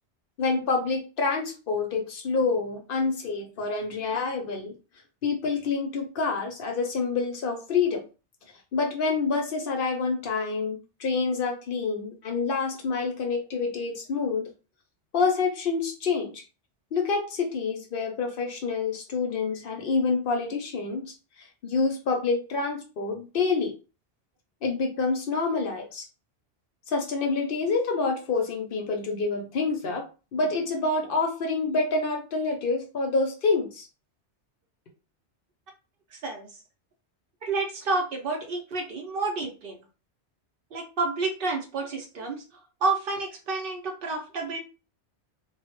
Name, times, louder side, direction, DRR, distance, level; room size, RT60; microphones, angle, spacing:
voice 1, 0.4-4.7 5.2-8.0 8.7-14.5 15.1-16.4 16.9-23.7 24.6-26.1 26.9-30.0 30.3-33.9, left 4 dB, 60° left, 3 dB, 0.6 m, -27 dB
voice 2, 36.1-36.5 37.4-39.8 40.7-44.6, right 3 dB, 60° right, 3 dB, 0.6 m, -30 dB
2.1 x 2.0 x 2.9 m, 0.33 s
omnidirectional pair, 1.2 m